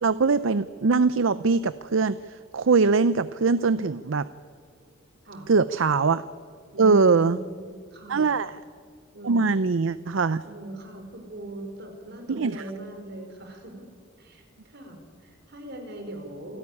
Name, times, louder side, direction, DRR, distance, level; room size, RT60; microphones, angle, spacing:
voice 1, 0.0-4.3 5.5-6.2 6.8-7.4 8.1-8.5 9.2-10.4 12.3-12.5, right 4 dB, 80° right, 14 dB, 0.6 m, -22 dB
voice 2, 6.7-8.3 9.1-9.9 10.4-13.9 14.2-16.6, right 1 dB, 60° right, 4 dB, 4.6 m, -40 dB
28.0 x 13.5 x 9.7 m, 2.2 s
head